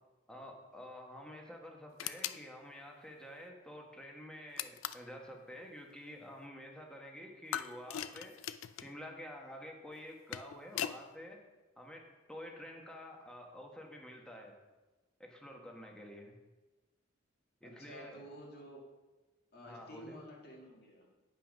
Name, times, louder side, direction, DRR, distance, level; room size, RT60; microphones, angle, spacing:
voice 1, 0.3-8.5 8.8-11.4 11.8-14.6 15.2-16.4 17.6-18.2 19.6-20.2, left 1 dB, 5° left, 1 dB, 1.3 m, -49 dB
sound 1, 2.0-2.4 4.6-5.1 7.5-8.9 10.0-11.0, left 10 dB, 75° left, 0.4 m, -40 dB
voice 2, 17.6-18.8 19.5-21.1, equal, 55° left, -1 dB, 1.9 m, -51 dB
9.0 x 5.6 x 5.2 m, 1.1 s
head